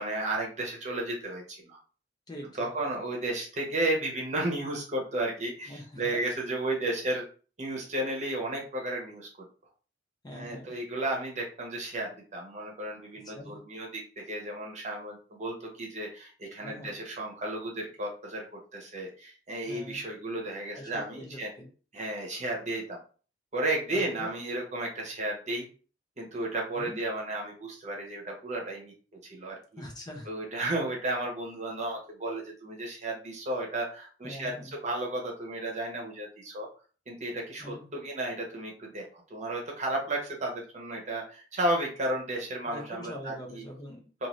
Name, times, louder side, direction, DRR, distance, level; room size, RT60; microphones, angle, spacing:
voice 1, 0.0-1.8 2.6-7.2 7.6-9.3 10.3-18.4 18.7-21.5 21.9-23.0 23.5-25.6 26.2-28.9 29.2-29.8 30.3-36.7 37.1-43.6 44.2-44.3, right 1 dB, 40° right, 0 dB, 0.9 m, -33 dB
voice 2, 2.3-2.7 5.7-6.1 10.2-10.7 13.3-13.6 16.6-17.0 19.7-20.0 20.7-21.7 23.9-24.3 26.8-27.0 29.8-30.3 34.2-34.8 37.6-37.9 42.7-44.0, left 1 dB, 20° left, 1 dB, 0.5 m, -43 dB
2.6 x 2.5 x 3.0 m, 0.39 s
head